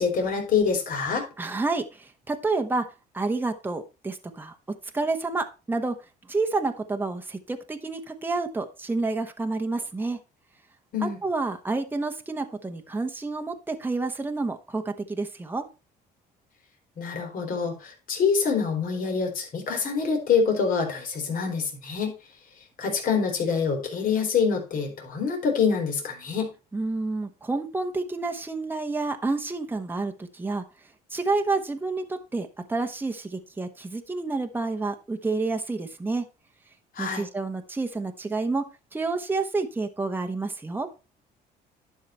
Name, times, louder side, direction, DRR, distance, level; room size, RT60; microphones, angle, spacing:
voice 1, 0.0-1.3 10.9-11.2 17.0-22.2 22.8-26.5 37.0-37.3, left 5 dB, 55° left, 3 dB, 3.6 m, -25 dB
voice 2, 1.4-2.8 3.1-4.5 4.9-5.9 6.3-10.2 11.2-15.6 26.7-30.6 31.1-36.2 37.0-38.6 38.9-40.9, right 3 dB, 10° right, 5 dB, 1.2 m, -29 dB
11.0 x 5.8 x 4.3 m, 0.30 s
cardioid pair, 110°, 17 cm